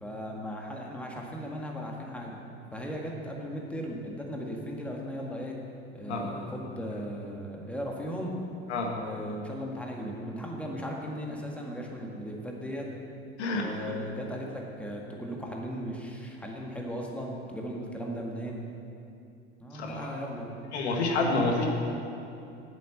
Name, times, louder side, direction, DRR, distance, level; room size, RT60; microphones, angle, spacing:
voice 1, 0.0-2.4 2.7-5.6 5.9-8.4 8.9-12.9 13.5-18.6 19.6-20.5, equal, 5° left, -1 dB, 1.8 m, -37 dB
voice 2, 19.7-20.1 20.7-21.7, left 3 dB, 80° left, 1 dB, 1.6 m, -28 dB
8.5 x 8.0 x 7.0 m, 2.7 s
hypercardioid pair, 75°, 33 cm